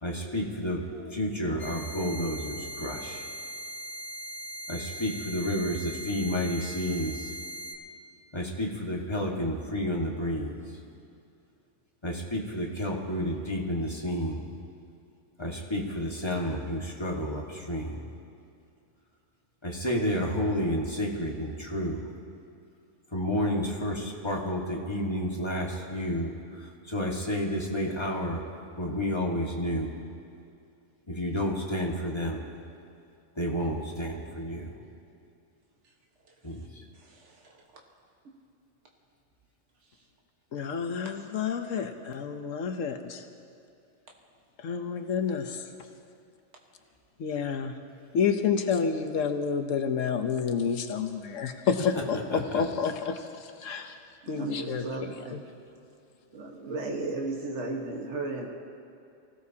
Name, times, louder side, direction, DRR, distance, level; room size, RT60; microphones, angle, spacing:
voice 1, 0.0-3.3 4.7-7.3 8.3-10.5 12.0-14.4 15.4-18.0 19.6-22.1 23.1-30.0 31.1-32.5 33.4-34.7 36.4-36.8 51.9-52.6, equal, 20° left, -2 dB, 1.7 m, -31 dB
sound 1, 1.6-7.7, right 1 dB, 65° left, 1.7 m, -40 dB
voice 2, 37.0-37.6 54.2-55.4 56.3-58.5, right 2 dB, 65° right, 0 dB, 1.7 m, -35 dB
voice 3, 40.5-43.2 44.6-45.7 47.2-47.7 48.1-53.2 53.6-54.0 54.3-55.4, left 6 dB, 90° left, 6 dB, 1.2 m, -29 dB
24.0 x 16.5 x 2.8 m, 2.6 s
omnidirectional pair, 1.3 m